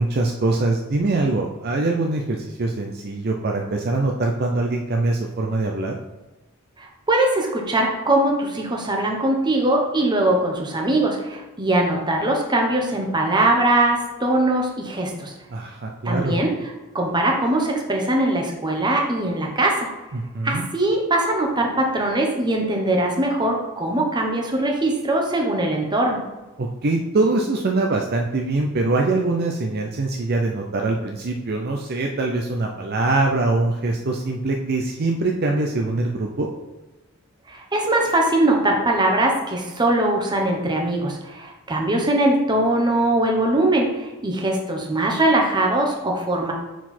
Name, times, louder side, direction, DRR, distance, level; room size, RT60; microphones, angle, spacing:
voice 1, 0.0-6.0 15.5-16.4 20.1-20.7 26.6-36.5, right 2 dB, 45° right, 1 dB, 0.5 m, -23 dB
voice 2, 6.8-15.3 16.0-16.5 16.9-19.9 20.4-26.2 37.5-46.5, right 1 dB, 20° right, 0 dB, 1.0 m, -21 dB
6.0 x 4.7 x 4.4 m, 1.1 s
head